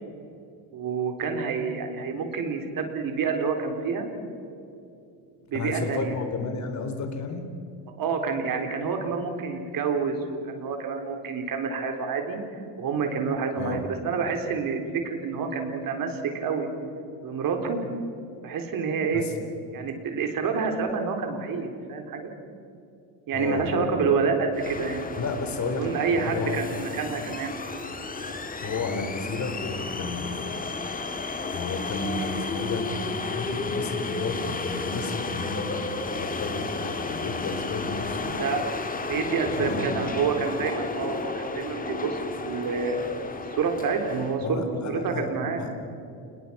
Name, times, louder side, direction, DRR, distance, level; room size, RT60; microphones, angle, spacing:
voice 1, 0.7-4.1 5.5-6.2 8.0-12.4 12.8-16.7 17.2-17.8 18.4-19.2 19.7-22.3 23.3-25.0 25.8-27.6 38.3-38.6 39.0-43.1 43.5-44.6 44.9-45.6, right 5 dB, 50° right, 4 dB, 3.8 m, -28 dB
voice 2, 5.5-7.4 13.6-13.8 19.1-19.3 23.3-24.0 25.2-25.9 26.1-26.8 28.6-30.7 31.5-38.3 39.4-40.1 44.4-45.3 45.6-45.7, left 3 dB, 40° left, 5 dB, 4.1 m, -32 dB
sound 1, 24.5-44.4, left 3 dB, 20° left, 1.9 m, -33 dB
29.0 x 21.0 x 5.8 m, 2.6 s
cardioid pair, 125°, 42 cm